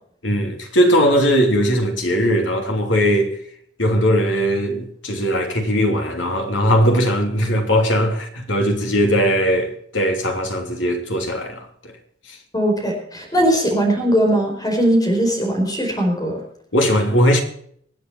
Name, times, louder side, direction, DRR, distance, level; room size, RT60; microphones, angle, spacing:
voice 1, 0.2-3.4 3.8-11.9 12.3-12.4 13.4-13.5 16.7-17.4, equal, 80° left, 3.2 m, -19 dB
voice 2, 12.5-16.4, equal, 20° left, 4.8 m, -19 dB
25.0 x 8.6 x 4.6 m
head